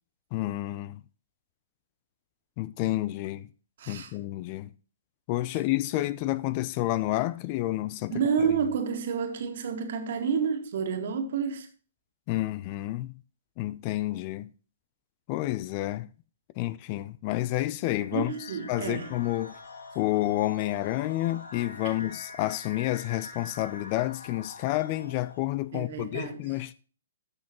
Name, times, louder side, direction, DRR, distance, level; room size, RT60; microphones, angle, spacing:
voice 1, 0.3-1.0 2.6-3.5 3.9-4.7 5.3-8.2 12.3-13.1 13.6-14.5 15.3-16.1 16.6-18.3 18.7-19.6 20.0-26.7, left 16 dB, 35° left, 0.5 m, -29 dB
voice 2, 3.8-4.1 8.1-11.7 18.1-19.1 21.8-21.9 25.7-26.4, right 6 dB, 55° right, 1.9 m, -29 dB
sound 1, 18.0-25.6, left 3 dB, 70° left, 1.9 m, -45 dB
13.5 x 6.2 x 3.1 m
figure-of-eight pair, 120°, 0 cm